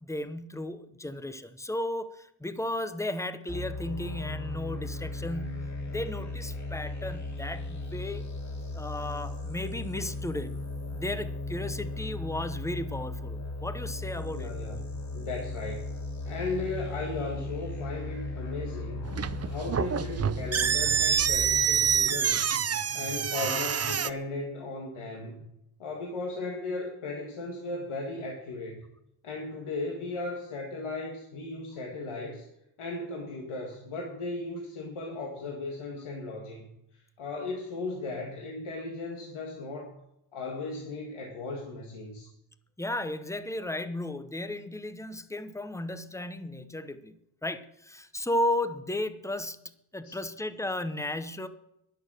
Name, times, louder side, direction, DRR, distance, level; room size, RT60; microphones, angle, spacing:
voice 1, 0.0-8.3 8.7-10.6 10.9-14.8 42.8-47.1 47.4-49.6 49.9-51.5, left 1 dB, 5° left, 11 dB, 0.7 m, -34 dB
sound 1, 3.5-22.0, left 2 dB, 35° left, 2.4 m, -36 dB
voice 2, 14.3-15.9 16.2-19.1 19.4-22.5 22.9-25.5 25.8-28.8 29.2-32.5 32.8-39.9 40.3-42.3 50.0-50.1, left 3 dB, 90° left, 0 dB, 2.2 m, -36 dB
sound 2, 19.0-24.1, right 8 dB, 35° right, 0.5 m, -27 dB
11.5 x 11.0 x 6.5 m, 0.82 s
wide cardioid pair, 135°, 48 cm